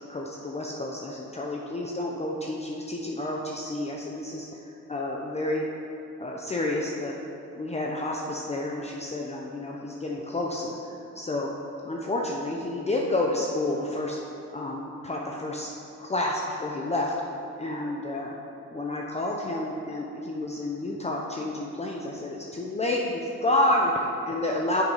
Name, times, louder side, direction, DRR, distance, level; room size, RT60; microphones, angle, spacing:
voice 1, 0.1-5.6 6.2-7.2 7.5-11.5 11.8-14.2 14.5-15.7 16.0-17.1 17.6-18.3 18.7-24.8, left 1 dB, 20° left, -1 dB, 0.7 m, -30 dB
6.8 x 6.5 x 4.8 m, 2.7 s
cardioid pair, 90°, 30 cm